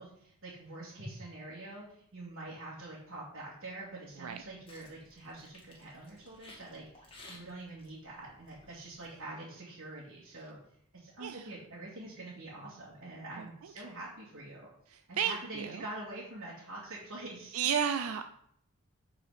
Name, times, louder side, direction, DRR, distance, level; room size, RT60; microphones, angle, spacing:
voice 1, 0.0-10.6 10.9-14.7 15.1-17.6, right 2 dB, 60° right, -8 dB, 2.5 m, -45 dB
sound 1, 4.2-9.2, left 2 dB, 25° left, 1.7 m, -57 dB
voice 2, 15.2-15.8 17.5-18.3, right 8 dB, 75° right, 8 dB, 0.4 m, -32 dB
8.2 x 4.8 x 5.1 m, 0.68 s
head